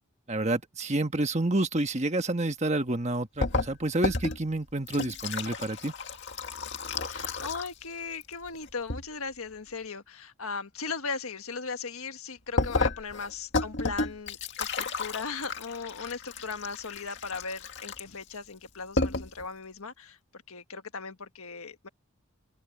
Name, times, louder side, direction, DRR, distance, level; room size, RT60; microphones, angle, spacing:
voice 1, 0.3-5.9, right 2 dB, 30° right, 1.4 m, -29 dB
sound 1, 3.4-7.9 8.1-9.0 12.6-18.3 18.7-18.8 19.0-19.4, left 3 dB, 50° left, 2.1 m, -32 dB
voice 2, 7.0-20.2 20.5-21.9, left 5 dB, 75° left, 1.5 m, -38 dB
open air
head